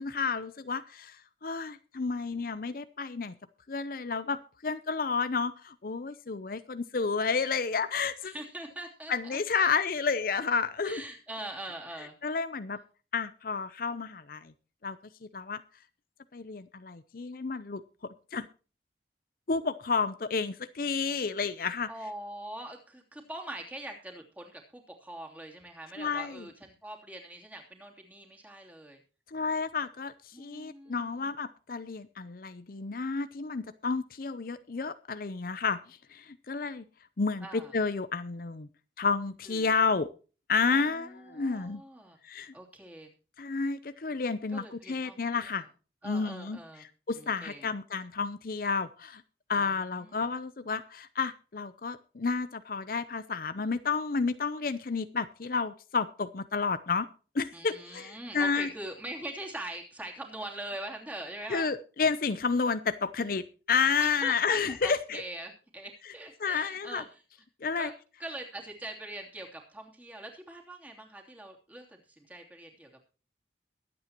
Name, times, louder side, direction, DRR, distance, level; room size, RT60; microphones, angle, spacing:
voice 1, 0.0-3.4 3.7-8.3 9.1-11.0 12.2-12.8 13.1-14.5 14.8-15.0 15.3-15.6 16.3-18.5 19.5-21.9 26.0-26.5 29.3-36.8 37.2-38.7 39.0-40.1 40.5-41.8 42.2-42.5 43.4-45.7 46.0-49.2 49.5-57.1 57.3-58.7 61.5-65.2 66.4-67.0 67.6-67.9, left 5 dB, 50° left, 13 dB, 0.6 m, -31 dB
voice 2, 8.2-9.7 10.8-12.1 21.9-26.5 26.8-29.0 30.3-31.3 37.4-37.7 39.4-39.7 40.7-42.2 42.5-43.1 44.5-45.5 46.0-46.8 47.1-47.7 49.5-50.2 57.5-61.7 64.0-67.2 67.8-67.9 68.2-72.9, right 1 dB, 10° right, 0 dB, 2.9 m, -43 dB
22.5 x 8.7 x 2.9 m, 0.36 s
head